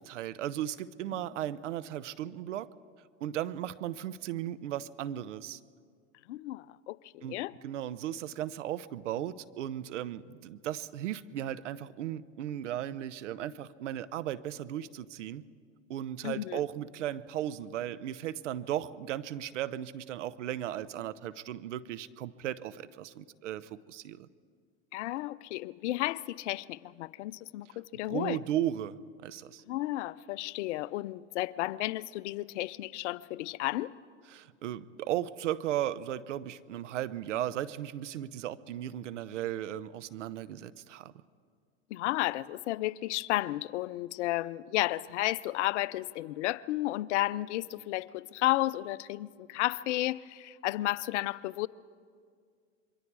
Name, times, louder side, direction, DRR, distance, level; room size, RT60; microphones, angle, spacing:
voice 1, 0.0-2.7 3.2-5.6 7.2-15.4 15.9-24.3 27.7-27.8 28.1-29.6 34.3-41.1, right 11 dB, 85° right, 0.8 m, -36 dB
voice 2, 6.3-7.5 16.2-16.6 24.9-28.4 29.7-33.9 41.9-51.7, left 17 dB, 75° left, 0.7 m, -33 dB
27.0 x 23.0 x 4.8 m
hypercardioid pair, 90°, 36 cm